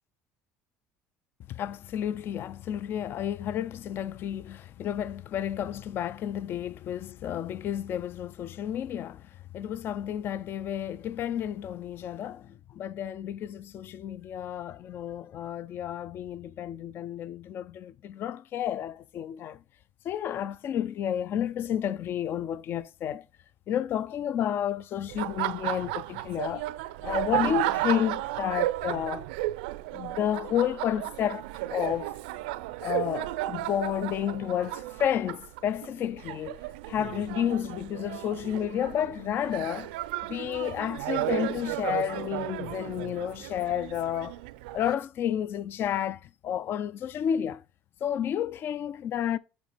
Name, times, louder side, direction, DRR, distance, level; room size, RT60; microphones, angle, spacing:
voice 1, 1.5-19.6 20.0-23.3 23.7-26.7 27.0-29.3 29.9-31.4 31.7-32.1 32.8-36.6 36.9-39.9 40.3-44.3 44.7-47.6 48.0-49.4, left 10 dB, 50° left, 0.4 m, -31 dB
Laughter, 25.1-44.9, right 17 dB, 90° right, 0.3 m, -34 dB
8.2 x 3.1 x 4.9 m
supercardioid pair, 95°, 5 cm